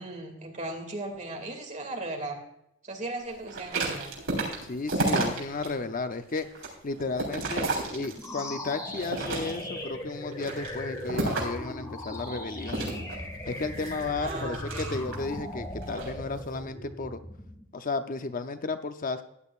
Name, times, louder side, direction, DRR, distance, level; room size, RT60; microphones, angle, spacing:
voice 1, 0.0-2.4 2.8-4.1 14.2-15.0, right 2 dB, 35° right, 3 dB, 2.3 m, -37 dB
sound 1, 3.5-5.7 6.1-8.5 8.9-9.8 10.3-11.7 12.7-15.3 15.8-16.1, right 2 dB, 70° right, 3.9 m, -32 dB
voice 2, 4.7-12.8 13.5-17.2 17.7-19.2, left 3 dB, 40° left, 8 dB, 0.6 m, -33 dB
sound 2, 8.1-17.6, left 1 dB, 15° left, 1.7 m, -38 dB
15.0 x 10.0 x 2.4 m, 0.80 s
head